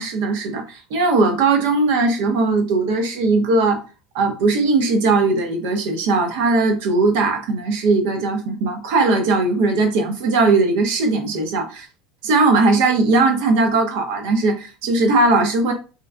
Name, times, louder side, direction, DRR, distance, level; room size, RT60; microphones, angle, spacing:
voice 1, 0.0-3.8 4.1-11.9 12.2-15.7, right 3 dB, 75° right, 4 dB, 1.0 m, -19 dB
3.3 x 3.1 x 2.4 m, 0.32 s
supercardioid pair, 135°, 0 cm